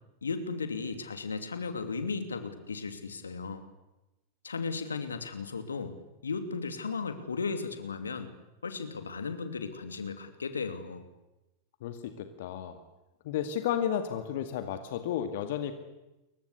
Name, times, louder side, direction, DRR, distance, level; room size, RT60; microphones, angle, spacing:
voice 1, 0.2-3.6 4.4-6.0 6.2-8.3 8.6-11.0, left 4 dB, 75° left, 9 dB, 2.8 m, -35 dB
voice 2, 11.8-12.8 13.2-15.7, left 9 dB, 55° left, 8 dB, 2.2 m, -32 dB
29.0 x 23.5 x 8.3 m, 1.0 s
figure-of-eight pair, 90°, 0 cm